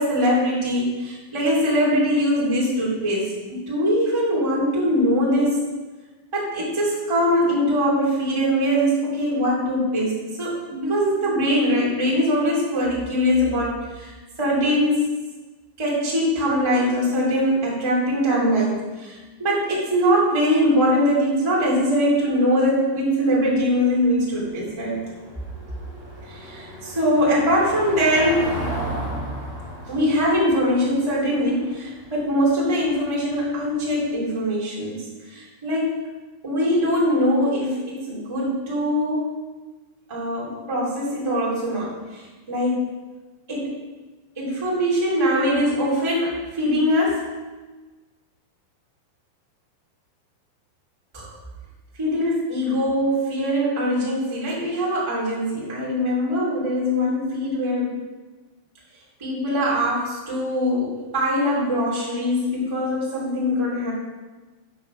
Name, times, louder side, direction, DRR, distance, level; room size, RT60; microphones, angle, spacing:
voice 1, 0.0-5.5 6.3-14.1 14.4-15.0 15.8-25.0 26.3-28.6 29.9-36.0 36.4-39.3 40.1-42.8 43.5-43.7 44.3-47.2 51.1-51.3 52.0-58.0 59.2-63.9, equal, 10° right, -6 dB, 1.5 m, -22 dB
Car passing by / Engine, 23.4-34.0, right 1 dB, 25° right, 2.7 m, -35 dB
8.9 x 5.9 x 6.2 m, 1.2 s
omnidirectional pair, 5.7 m